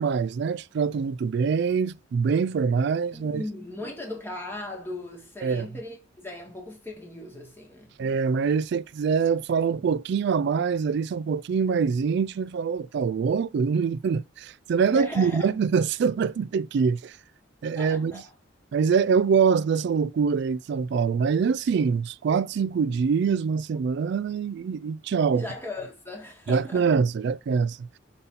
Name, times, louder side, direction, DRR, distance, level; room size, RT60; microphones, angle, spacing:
voice 1, 0.0-3.4 5.4-5.7 8.0-17.2 17.6-18.2 18.7-25.4 26.5-27.9, right 6 dB, 60° right, 0.3 m, -24 dB
voice 2, 3.1-7.9 14.9-15.5 17.8-18.3 25.3-26.9, left 1 dB, 10° left, 2.0 m, -38 dB
5.4 x 4.0 x 5.5 m
head